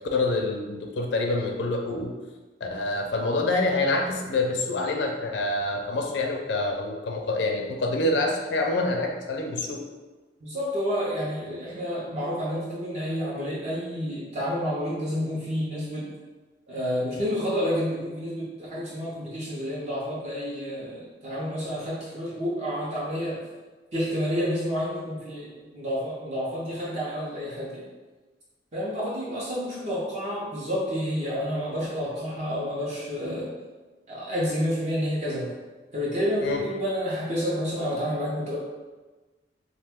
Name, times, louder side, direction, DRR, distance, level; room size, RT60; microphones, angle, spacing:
voice 1, 0.1-2.1 2.6-9.8 36.4-36.6, left 2 dB, 80° left, 2 dB, 0.4 m, -26 dB
voice 2, 10.4-16.1 16.7-23.4 23.9-27.9 28.7-33.5 34.1-35.5 35.9-38.6, equal, 40° right, -7 dB, 0.6 m, -29 dB
2.9 x 2.2 x 3.5 m, 1.3 s
head